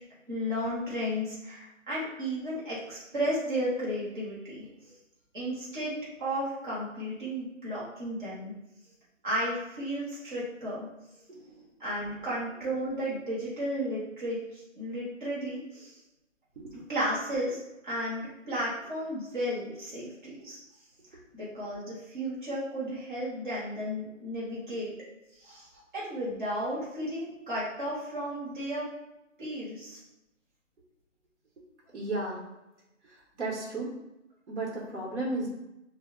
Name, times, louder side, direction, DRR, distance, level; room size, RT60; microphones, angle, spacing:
voice 1, 0.3-4.9 5.3-8.5 9.2-10.9 11.8-16.0 16.7-20.6 21.3-24.9 25.3-28.9 29.4-30.0, equal, 40° right, -8 dB, 0.8 m, -34 dB
voice 2, 31.9-32.4 33.4-33.9 34.5-35.5, right 2 dB, 65° right, -4 dB, 1.0 m, -33 dB
2.2 x 2.1 x 3.6 m, 0.93 s
hypercardioid pair, 175°, 38 cm